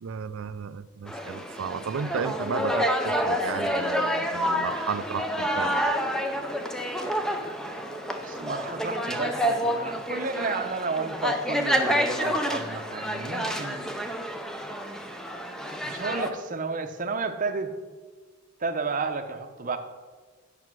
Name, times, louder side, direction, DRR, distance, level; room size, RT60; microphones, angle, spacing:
voice 1, 0.0-5.9, right 6 dB, 85° right, 15 dB, 0.4 m, -34 dB
sound 1, 1.1-16.3, equal, 5° left, 0.6 m, -28 dB
voice 2, 8.2-13.9 15.8-17.7 18.6-19.8, right 4 dB, 40° right, 7 dB, 0.8 m, -32 dB
9.4 x 5.9 x 6.1 m, 1.4 s
head